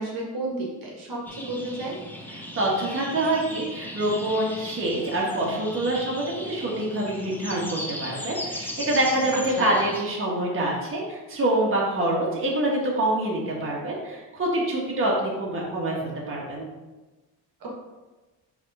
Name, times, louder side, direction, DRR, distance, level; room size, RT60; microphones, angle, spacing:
voice 1, 0.0-2.0 9.5-9.7 17.6-17.7, right 2 dB, 60° right, -2 dB, 1.5 m, -32 dB
sound 1, 1.2-10.0, left 1 dB, 5° left, 0.7 m, -37 dB
voice 2, 2.3-9.3 9.6-16.7, right 1 dB, 30° right, -4 dB, 1.6 m, -26 dB
5.0 x 3.6 x 5.4 m, 1.2 s
cardioid pair, 130°, 40 cm